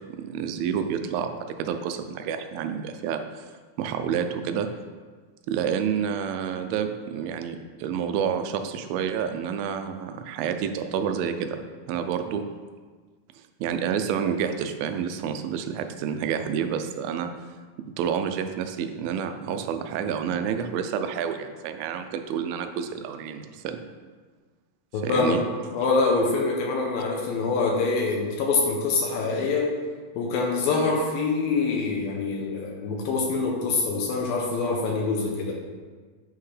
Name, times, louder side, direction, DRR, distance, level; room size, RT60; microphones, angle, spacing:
voice 1, 0.2-3.2 3.8-4.7 5.5-11.6 11.9-12.4 13.6-17.3 18.0-23.8 25.0-25.4, right 7 dB, 85° right, 7 dB, 2.3 m, -29 dB
voice 2, 24.9-25.4 25.7-29.8 30.2-35.5, left 3 dB, 80° left, 0 dB, 2.4 m, -25 dB
8.8 x 5.7 x 3.2 m, 1.5 s
omnidirectional pair, 4.3 m